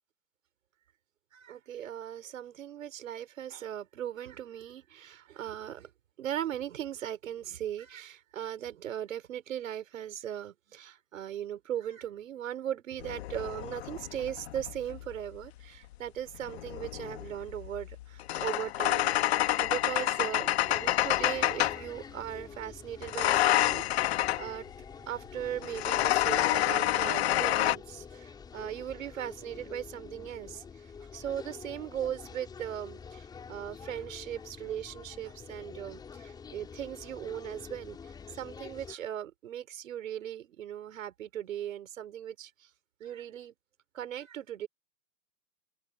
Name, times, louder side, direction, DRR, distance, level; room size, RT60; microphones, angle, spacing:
voice 1, 1.3-5.9 6.2-24.7 25.1-42.7 43.0-43.5 43.9-44.7, right 10 dB, 65° right, 5.5 m, -38 dB
sound 1, 13.0-15.1 16.3-21.9 23.0-24.5 25.6-27.7, left 14 dB, 45° left, 2.0 m, -28 dB
sound 2, 20.7-39.0, left 6 dB, 10° left, 5.1 m, -47 dB
open air
hypercardioid pair, 165°, 43 cm